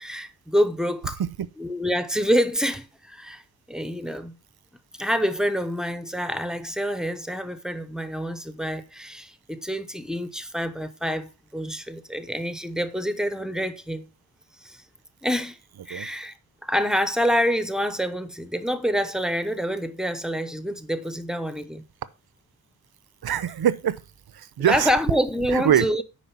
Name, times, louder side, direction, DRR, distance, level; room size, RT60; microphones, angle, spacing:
voice 1, 0.0-1.2 1.6-3.4 3.7-4.4 5.0-14.1 14.6-14.8 15.2-15.6 15.9-16.3 16.6-21.8 24.7-26.0, equal, ahead, 0.8 m, -27 dB
voice 2, 23.2-24.0 24.3-24.9 25.5-25.9, right 10 dB, 75° right, 0.8 m, -23 dB
9.3 x 5.4 x 5.5 m
wide cardioid pair, 155°, 38 cm